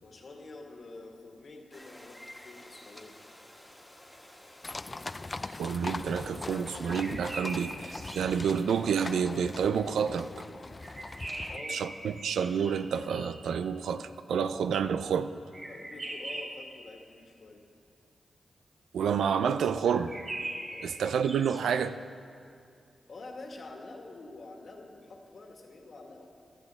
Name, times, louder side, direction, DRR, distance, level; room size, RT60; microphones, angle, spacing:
voice 1, 0.0-3.2 11.5-11.8 15.7-17.6 20.7-20.9 23.1-26.3, left 2 dB, 60° left, 1 dB, 1.8 m, -47 dB
sound 1, 1.7-7.2, left 1 dB, 15° left, 1.6 m, -52 dB
sound 2, 4.6-11.6, left 3 dB, 35° left, 0.3 m, -41 dB
voice 2, 5.6-10.3 11.7-15.3 18.9-20.2 20.8-22.0, right 7 dB, 85° right, 11 dB, 0.4 m, -29 dB
sound 3, 6.8-8.5 10.8-13.5 15.5-16.7 19.8-21.6, right 1 dB, 50° right, 2.7 m, -41 dB
15.5 x 12.5 x 3.6 m, 2.5 s
cardioid pair, 50°, 0 cm